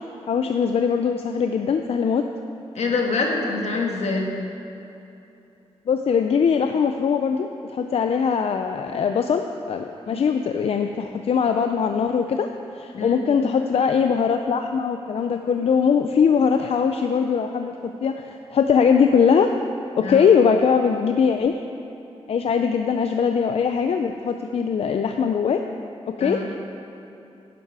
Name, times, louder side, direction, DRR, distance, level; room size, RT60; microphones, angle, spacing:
voice 1, 0.3-2.2 5.9-12.5 12.7-17.7 18.0-19.5 20.0-21.6 22.3-25.6 26.1-26.6, left 6 dB, 65° left, 6 dB, 0.5 m, -21 dB
voice 2, 2.7-4.4 10.1-10.2 12.9-13.2 20.0-20.3 26.2-26.5, left 3 dB, 85° left, 1 dB, 1.5 m, -25 dB
11.0 x 10.5 x 4.8 m, 2.9 s
wide cardioid pair, 130°, 11 cm